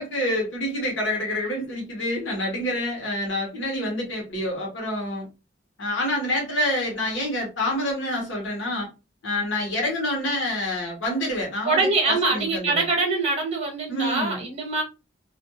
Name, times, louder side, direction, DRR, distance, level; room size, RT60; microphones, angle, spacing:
voice 1, 0.0-5.3 5.8-8.9 9.2-11.8 12.1-12.9 13.9-14.4, left 1 dB, 75° left, 1.0 m, -27 dB
voice 2, 11.7-14.8, right 3 dB, 35° right, 1.1 m, -24 dB
2.4 x 2.2 x 2.9 m
head